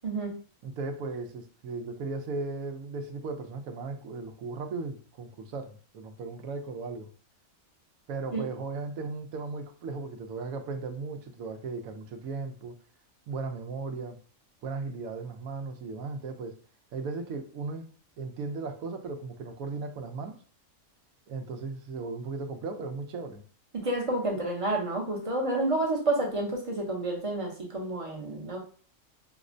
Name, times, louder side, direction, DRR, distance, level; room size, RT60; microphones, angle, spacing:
voice 1, 0.0-0.4 8.3-8.5 23.7-28.6, right 2 dB, 30° right, 0.6 m, -29 dB
voice 2, 0.6-7.1 8.1-12.8 13.3-14.2 14.6-16.6 16.9-17.9 18.2-20.4 21.3-23.4, right 4 dB, 80° right, 1.0 m, -36 dB
5.1 x 2.1 x 2.5 m
omnidirectional pair, 1.4 m